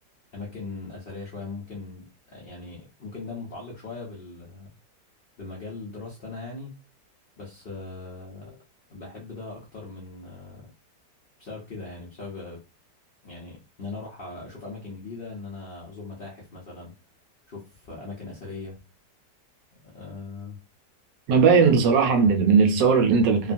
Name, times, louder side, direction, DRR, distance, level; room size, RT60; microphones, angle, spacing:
voice 1, 0.3-4.7 5.4-6.7 7.4-8.6 8.9-10.7 11.4-12.6 13.2-16.9 17.5-18.8 19.9-20.6 21.6-21.7, left 3 dB, 60° left, 0.6 m, -39 dB
voice 2, 21.3-23.5, right 5 dB, 90° right, 1.3 m, -18 dB
3.1 x 2.2 x 2.5 m
omnidirectional pair, 1.9 m